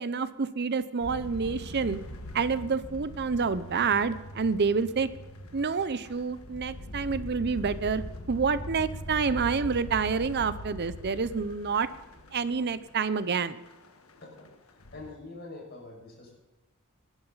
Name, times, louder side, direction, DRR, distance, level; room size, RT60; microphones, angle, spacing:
voice 1, 0.0-2.0 2.3-5.1 5.5-11.9 12.3-13.6, right 5 dB, 50° right, 14 dB, 0.6 m, -28 dB
sound 1, 1.0-13.3 13.7-14.5 14.8-15.1, equal, 80° left, 1.5 m, -41 dB
voice 2, 14.9-16.3, left 2 dB, 50° left, -1 dB, 6.0 m, -44 dB
18.5 x 12.0 x 4.0 m, 1.1 s
head